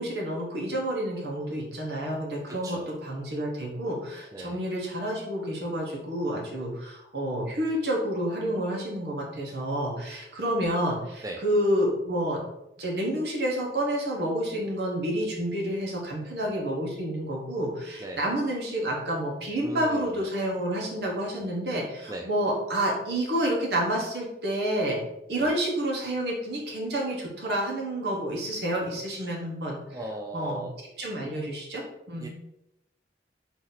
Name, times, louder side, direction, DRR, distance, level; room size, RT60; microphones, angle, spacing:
voice 1, 0.0-12.4 12.8-25.0 25.3-29.8 30.3-30.7 31.0-32.3, right 1 dB, 70° right, -2 dB, 1.2 m, -29 dB
voice 2, 2.5-2.9 4.3-4.6 9.5-9.6 11.2-11.4 18.0-18.2 19.6-20.2 22.1-22.3 25.3-25.5 29.1-29.4 29.9-30.7 31.2-31.3 32.2-32.3, right 1 dB, 20° right, 2 dB, 0.3 m, -38 dB
4.0 x 2.8 x 4.0 m, 0.85 s
head